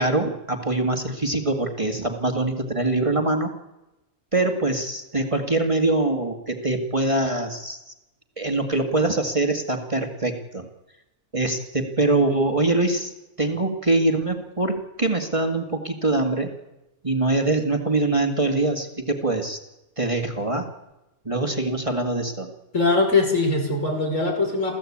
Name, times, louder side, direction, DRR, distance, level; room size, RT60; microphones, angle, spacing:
voice 1, 0.0-3.5 4.3-7.8 8.4-10.6 11.3-13.1 13.4-16.5 17.0-19.6 20.0-20.7 21.3-22.5, right 2 dB, 25° right, 4 dB, 2.1 m, -23 dB
voice 2, 22.7-24.8, left 3 dB, 65° left, 3 dB, 5.5 m, -21 dB
28.5 x 15.0 x 8.7 m, 0.97 s
omnidirectional pair, 1.4 m